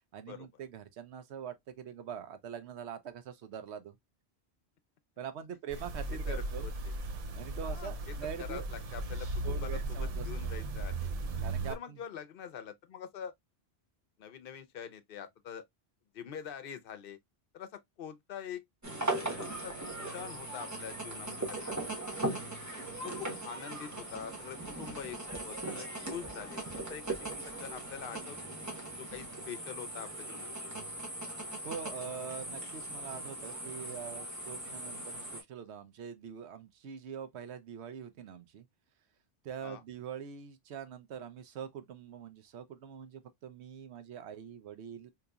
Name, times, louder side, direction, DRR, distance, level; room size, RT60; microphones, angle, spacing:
voice 1, 0.1-4.0 5.2-6.6 7.3-8.7 9.4-10.3 11.4-12.0 31.6-38.7 39.4-45.1, right 8 dB, 85° right, 0.9 m, -44 dB
sound 1, 5.7-11.7, right 2 dB, 50° right, 0.5 m, -36 dB
voice 2, 6.1-6.9 7.6-9.3 9.6-10.9 11.7-13.3 14.2-15.6 16.1-17.2 17.5-18.6 19.3-21.7 22.0-22.1 22.4-22.5 23.0-28.4 29.0-30.5 39.6-39.8, left 8 dB, 60° left, 0.8 m, -45 dB
sound 2, 18.8-35.4, right 2 dB, 15° right, 1.0 m, -39 dB
3.8 x 2.9 x 2.2 m
omnidirectional pair, 1.1 m